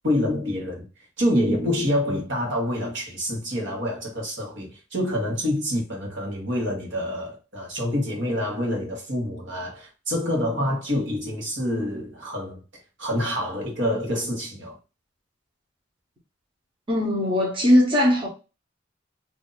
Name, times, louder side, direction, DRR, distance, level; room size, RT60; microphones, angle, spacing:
voice 1, 0.0-0.8 1.2-12.6 13.0-14.8, left 1 dB, 65° right, 1.4 m, -27 dB
voice 2, 16.9-18.3, left 1 dB, 30° right, 1.1 m, -19 dB
2.8 x 2.6 x 3.9 m
head